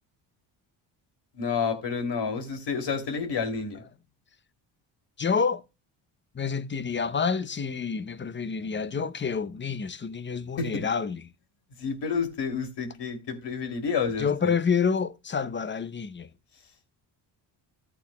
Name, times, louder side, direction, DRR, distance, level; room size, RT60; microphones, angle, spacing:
voice 1, 1.3-3.8 10.6-10.9 11.8-14.5, left 5 dB, 55° left, 3.0 m, -30 dB
voice 2, 5.2-5.6 6.3-11.2 14.2-16.3, left 6 dB, 25° left, 0.7 m, -28 dB
14.0 x 8.6 x 2.3 m
supercardioid pair, 70°, 48 cm